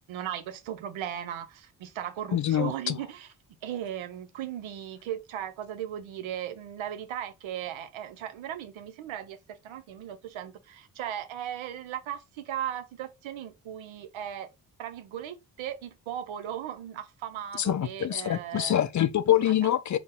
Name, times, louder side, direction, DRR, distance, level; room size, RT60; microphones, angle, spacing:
voice 1, 0.1-3.3 3.6-14.5 14.8-18.8 19.4-19.5, right 10 dB, 70° right, 0.8 m, -37 dB
voice 2, 2.3-3.0 17.6-20.0, left 11 dB, 40° left, 0.4 m, -25 dB
3.9 x 2.4 x 3.7 m
hypercardioid pair, 40°, 49 cm